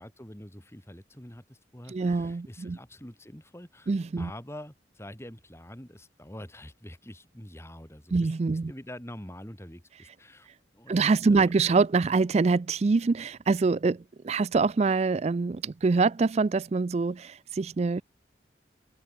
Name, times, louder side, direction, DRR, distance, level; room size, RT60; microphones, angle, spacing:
voice 1, 0.0-3.9 4.2-8.3 8.7-10.5 10.7-11.5, left 1 dB, 15° left, 3.4 m, -45 dB
voice 2, 1.9-2.8 3.9-4.3 8.1-8.7 10.9-14.0 14.2-18.0, right 4 dB, 35° right, 0.4 m, -25 dB
open air
head